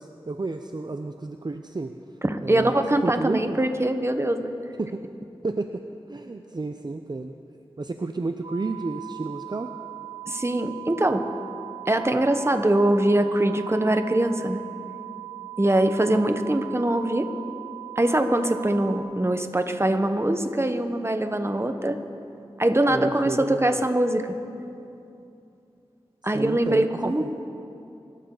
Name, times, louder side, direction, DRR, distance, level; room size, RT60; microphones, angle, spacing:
voice 1, 0.0-1.9 2.4-3.6 4.8-5.0 5.4-7.3 7.8-9.7 22.9-23.8 26.3-27.3, right 3 dB, 45° right, 6 dB, 0.6 m, -31 dB
voice 2, 2.2-4.5 10.3-11.3 11.9-14.6 15.6-17.3 18.0-22.0 22.6-24.3 26.2-27.3, right 1 dB, 25° right, 7 dB, 1.1 m, -23 dB
sound 1, 8.4-19.0, right 17 dB, 90° right, 1.5 m, -39 dB
24.0 x 13.0 x 4.0 m, 2.7 s
wide cardioid pair, 40°, 10 cm